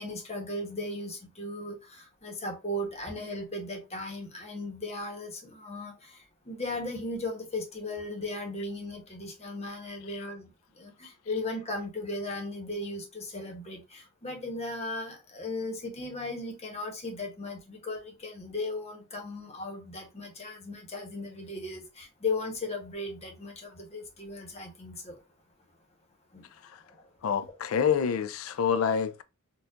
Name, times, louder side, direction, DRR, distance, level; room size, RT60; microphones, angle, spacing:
voice 1, 0.0-6.2 6.4-25.2 26.3-26.4, left 2 dB, 30° left, 1.0 m, -37 dB
voice 2, 27.2-29.2, left 7 dB, 70° left, 0.4 m, -27 dB
4.3 x 2.3 x 2.5 m
head